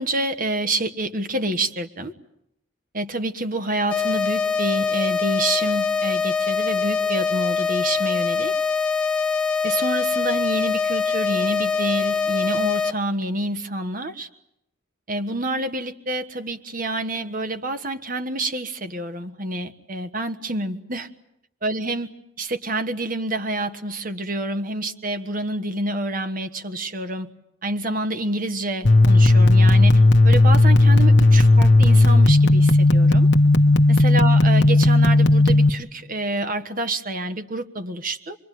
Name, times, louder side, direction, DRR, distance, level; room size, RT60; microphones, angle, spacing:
voice 1, 0.0-2.1 2.9-8.5 9.6-14.3 15.1-21.1 21.6-22.1 22.4-27.3 27.6-33.3 33.9-38.4, right 2 dB, 40° right, 8 dB, 1.4 m, -28 dB
sound 1, 3.9-12.9, left 5 dB, 5° left, 1.0 m, -23 dB
sound 2, 28.8-35.7, left 2 dB, 55° left, 1.1 m, -14 dB
26.0 x 22.5 x 9.3 m, 0.80 s
head